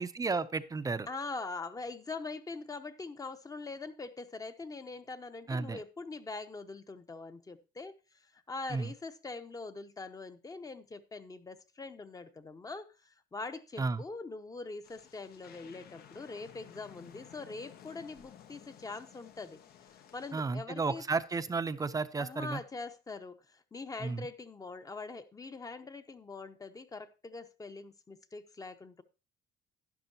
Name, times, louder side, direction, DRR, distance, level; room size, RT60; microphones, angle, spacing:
voice 1, 0.0-1.1 5.5-5.8 8.7-8.9 13.8-14.0 20.3-22.6 24.0-24.3, right 4 dB, 20° right, 12 dB, 0.6 m, -33 dB
voice 2, 1.1-19.6 19.9-21.0 22.2-29.0, left 3 dB, 20° left, 9 dB, 0.9 m, -43 dB
sound 1, 14.8-20.3, left 9 dB, 65° left, 1.0 m, -55 dB
12.0 x 10.5 x 2.9 m, 0.30 s
cardioid pair, 110°, 17 cm